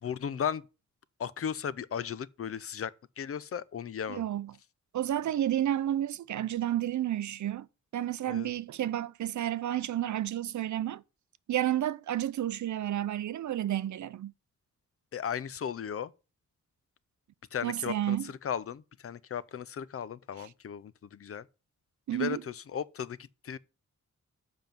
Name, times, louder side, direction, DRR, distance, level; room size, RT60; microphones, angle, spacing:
voice 1, 0.0-0.7 1.2-4.3 8.3-8.5 15.1-16.1 17.5-21.5 22.1-23.6, left 8 dB, 50° left, 0.5 m, -36 dB
voice 2, 4.1-4.5 4.9-7.7 7.9-11.0 11.5-14.3 17.6-18.3 22.1-22.4, right 12 dB, 70° right, 0.5 m, -31 dB
7.4 x 5.3 x 5.8 m
wide cardioid pair, 135°, 30 cm